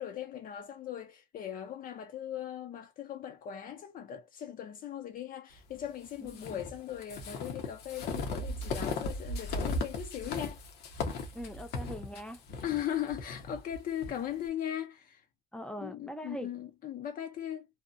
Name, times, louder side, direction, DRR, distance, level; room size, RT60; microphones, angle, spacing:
voice 1, 0.0-10.6 12.6-15.3 15.8-17.7, left 10 dB, 55° left, 0.5 m, -39 dB
voice 2, 6.2-6.6 11.3-12.4 15.5-16.5, equal, 5° left, 0.6 m, -42 dB
sound 1, 6.3-14.2, left 3 dB, 75° left, 0.8 m, -37 dB
2.7 x 2.1 x 2.5 m
cardioid pair, 110°, 17 cm